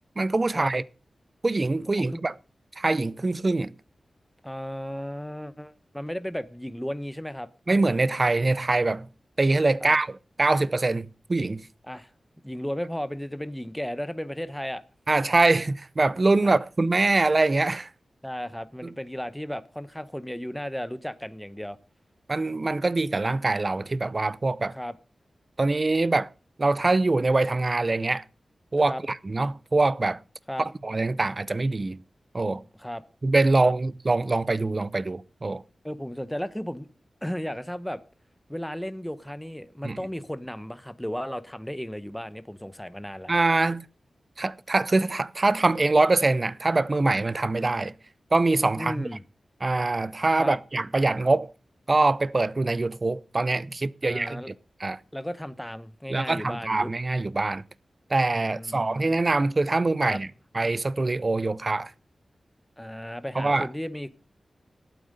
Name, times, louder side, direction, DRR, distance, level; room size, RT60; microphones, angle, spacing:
voice 1, 0.2-0.8 1.4-2.3 2.8-3.7 7.7-9.1 9.4-11.7 15.1-17.9 22.3-24.7 25.6-26.3 26.6-28.2 28.7-30.2 30.8-32.0 32.3-32.6 33.2-35.6 39.8-40.0 43.3-43.9 44.4-47.9 48.3-49.1 49.6-51.5 51.9-54.4 54.8-55.0 56.1-57.6 58.1-60.3 60.5-61.9 63.4-63.7, right 2 dB, 35° right, 0.5 m, -24 dB
voice 2, 4.4-7.5 9.8-9.9 11.9-12.1 12.4-14.8 16.4-16.6 18.2-21.8 24.7-24.9 28.8-29.0 30.5-30.7 32.8-33.0 33.6-33.7 35.8-36.9 37.2-38.0 38.5-43.3 48.7-49.2 50.4-50.6 54.0-54.5 55.1-56.9 58.4-59.0 60.0-60.2 62.8-64.1, equal, 5° left, 0.9 m, -34 dB
12.0 x 9.1 x 6.6 m
wide cardioid pair, 105°, 0 cm